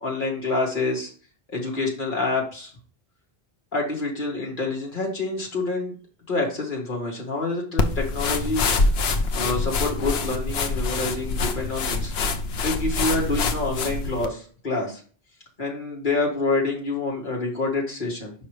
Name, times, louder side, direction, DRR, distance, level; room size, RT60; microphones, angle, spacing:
voice 1, 0.0-1.1 1.5-2.7 3.7-6.0 6.3-8.7 9.3-12.1 12.6-15.0 15.6-18.3, left 3 dB, 50° left, -2 dB, 2.0 m, -27 dB
sound 1, 7.8-14.3, left 3 dB, 80° left, 1.0 m, -25 dB
5.7 x 5.4 x 3.3 m, 0.41 s
omnidirectional pair, 1.0 m